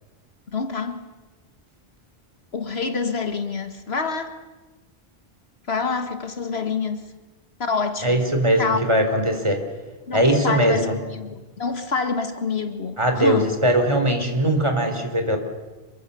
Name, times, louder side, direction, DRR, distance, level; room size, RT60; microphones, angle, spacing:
voice 1, 0.5-1.0 2.5-4.3 5.7-7.1 7.6-8.2 8.6-8.9 10.1-13.5, left 4 dB, 80° left, 8 dB, 2.0 m, -27 dB
voice 2, 8.0-9.6 10.1-11.0 13.0-15.4, right 1 dB, 30° right, 5 dB, 3.7 m, -20 dB
26.5 x 23.5 x 6.9 m, 1.2 s
omnidirectional pair, 1.0 m